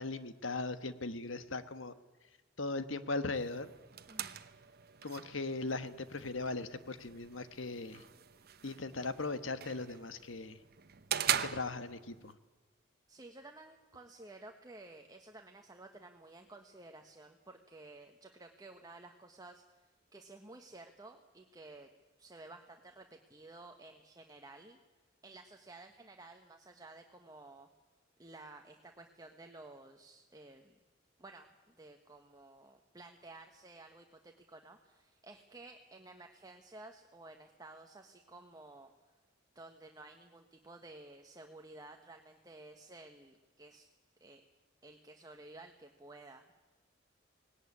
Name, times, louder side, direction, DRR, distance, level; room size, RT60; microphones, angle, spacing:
voice 1, 0.0-1.9 2.6-3.7 5.0-8.0 8.6-10.6 11.4-12.3, left 3 dB, 80° left, 12 dB, 1.4 m, -38 dB
sound 1, 3.3-12.3, right 9 dB, 55° right, 1.0 m, -41 dB
voice 2, 4.1-4.4 13.1-21.9 22.2-24.8 25.2-27.7 28.2-30.7 31.2-38.9 39.5-43.9 44.2-44.4 44.8-46.6, right 2 dB, 20° right, 4 dB, 1.3 m, -54 dB
19.5 x 18.0 x 9.8 m, 1.2 s
head